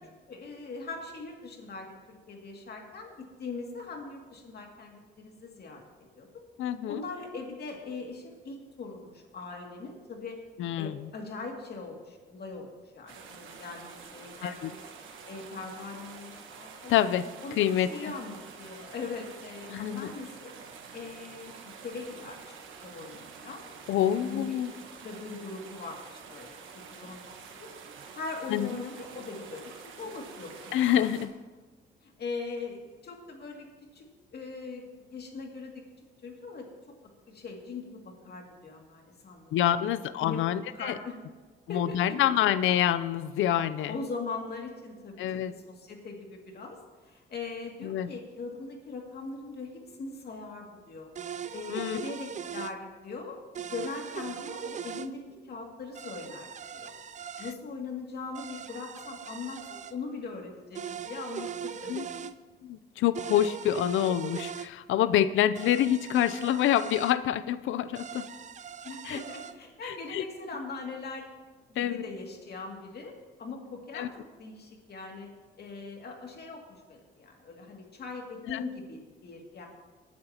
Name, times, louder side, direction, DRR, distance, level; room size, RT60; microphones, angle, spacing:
voice 1, 0.3-5.8 6.1-6.3 6.9-10.4 10.8-12.7 12.9-14.8 15.3-17.1 17.4-20.5 20.9-22.5 22.8-23.6 24.0-24.6 25.0-26.6 26.9-27.7 28.1-31.0 32.0-33.7 33.9-34.1 34.3-35.8 36.2-36.7 37.3-39.8 40.2-40.5 40.7-41.3 41.7-42.4 43.9-46.8 47.0-51.1 51.5-53.4 53.7-56.9 57.4-62.1 68.8-71.3 71.7-73.1 73.4-74.1 74.4-75.3 75.6-79.7, left 4 dB, 55° left, 1 dB, 2.4 m, -41 dB
voice 2, 6.6-7.0 10.6-11.1 14.4-14.7 16.9-17.3 17.6-18.1 19.7-20.1 23.9-24.7 28.5-28.7 30.7-31.3 39.5-40.9 41.7-43.9 45.2-45.5 47.8-48.1 51.7-52.0 61.9-68.3 69.1-69.2 69.8-70.2 71.8-72.0 73.9-74.1 78.5-78.6, left 11 dB, 80° left, 15 dB, 0.6 m, -27 dB
sound 1, 13.1-31.3, right 6 dB, 80° right, 1.4 m, -48 dB
sound 2, 51.2-52.8 53.6-55.1 56.0-57.6 58.4-59.9 60.8-62.3 63.2-64.7 65.6-67.2 68.0-69.5, right 7 dB, 40° right, 0.5 m, -40 dB
19.0 x 9.5 x 2.9 m, 1.3 s
cardioid pair, 90°, 20 cm